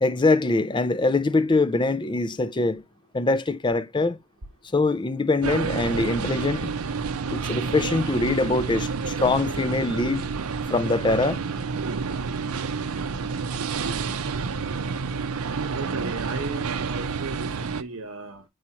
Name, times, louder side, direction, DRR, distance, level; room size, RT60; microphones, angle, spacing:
voice 1, 0.0-2.8 3.1-4.2 4.7-6.7 7.3-10.2 10.7-11.4, left 3 dB, 20° left, 0.4 m, -23 dB
sound 1, 5.4-17.8, right 5 dB, 85° right, 0.6 m, -29 dB
voice 2, 15.7-18.4, right 3 dB, 65° right, 1.0 m, -35 dB
7.5 x 4.8 x 2.8 m
head